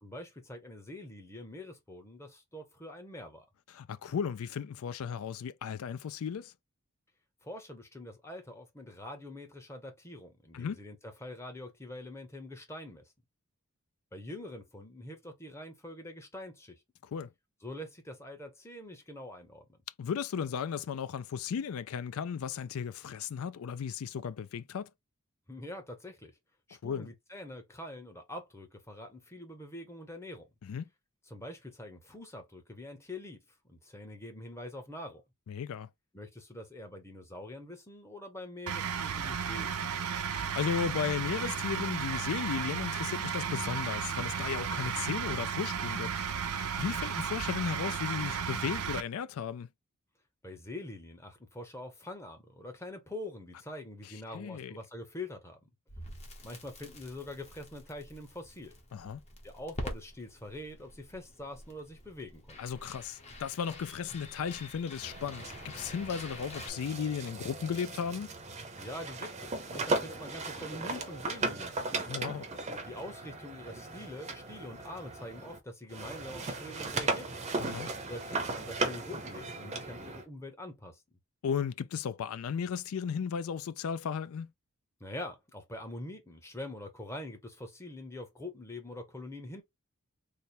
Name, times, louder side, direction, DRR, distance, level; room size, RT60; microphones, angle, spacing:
voice 1, 0.0-3.4 7.4-13.0 14.1-16.8 17.6-19.6 25.5-26.3 26.7-30.5 31.3-33.4 33.7-35.2 36.1-40.1 50.4-55.7 56.4-58.7 59.4-62.6 68.8-72.2 72.8-77.5 78.1-81.0 85.0-89.6, left 1 dB, 15° left, 0.8 m, -44 dB
voice 2, 3.7-6.5 10.5-10.8 17.1-17.3 20.0-24.9 26.8-27.1 30.6-30.9 35.5-35.9 40.3-46.1 46.8-49.7 54.3-54.7 58.9-59.2 62.6-68.3 72.1-72.5 77.6-77.9 81.4-84.5, left 7 dB, 75° left, 0.4 m, -35 dB
sound 1, 38.7-49.0, right 7 dB, 85° right, 0.5 m, -34 dB
Crackle, 55.9-66.7, left 1 dB, 30° left, 0.9 m, -47 dB
sound 2, 65.0-75.6 75.9-80.2, right 3 dB, 30° right, 0.6 m, -37 dB
3.3 x 2.0 x 4.1 m
head